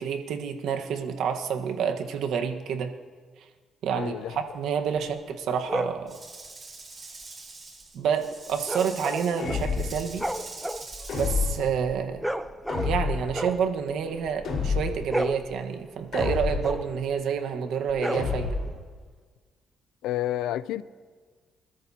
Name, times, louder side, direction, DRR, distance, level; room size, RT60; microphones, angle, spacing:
voice 1, 0.0-2.9 3.8-6.2 7.9-10.2 11.1-12.3 12.8-18.6, right 7 dB, 80° right, 1.3 m, -28 dB
voice 2, 3.9-4.4 20.0-20.8, left 13 dB, 90° left, 0.4 m, -30 dB
sound 1, 5.7-6.0 8.6-9.7 10.0-13.0 13.3-14.6 14.9-17.0 17.9-18.7, equal, 5° right, 0.7 m, -33 dB
Rattle / Rattle (instrument), 6.1-11.6, right 3 dB, 35° right, 4.0 m, -44 dB
sound 2, 9.4-10.1 11.1-11.7 12.7-13.4 14.4-15.1 16.1-16.8 18.1-18.8, left 5 dB, 70° left, 4.5 m, -29 dB
25.5 x 13.0 x 2.8 m
cardioid pair, 90°, 0 cm